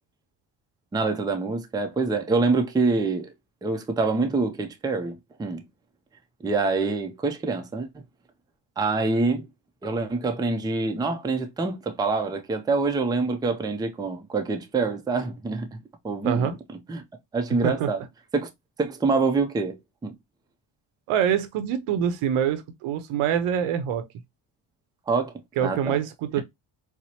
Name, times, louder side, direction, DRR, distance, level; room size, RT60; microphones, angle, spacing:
voice 1, 0.9-3.3 3.6-5.6 6.4-7.9 8.8-9.5 9.8-15.8 16.0-17.0 17.3-18.0 18.3-18.5 18.8-20.1 25.1-25.3 25.6-26.0, right 3 dB, 10° right, 0.4 m, -26 dB
voice 2, 16.2-16.5 17.6-17.9 21.1-24.1 25.6-26.4, right 9 dB, 85° right, 0.7 m, -25 dB
4.3 x 2.0 x 2.7 m
cardioid pair, 100°, 49 cm